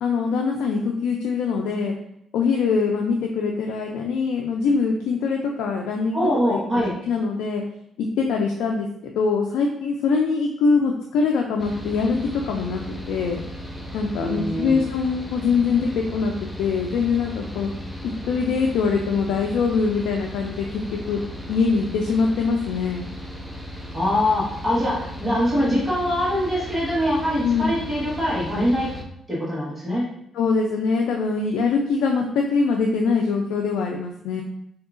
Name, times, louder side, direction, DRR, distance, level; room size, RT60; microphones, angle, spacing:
voice 1, 0.0-1.9 2.3-7.6 8.0-13.4 13.9-16.3 16.6-17.7 18.0-21.2 21.5-23.1 27.4-27.7 30.3-34.4, left 5 dB, 85° left, 1 dB, 0.3 m, -23 dB
voice 2, 6.1-6.9 14.2-14.8 23.9-28.9 29.3-30.1, equal, 20° right, -7 dB, 1.3 m, -23 dB
Mechanical fan, 11.6-29.0, equal, 5° left, 0.6 m, -36 dB
4.5 x 2.8 x 2.5 m, 0.73 s
cardioid pair, 90°, 0 cm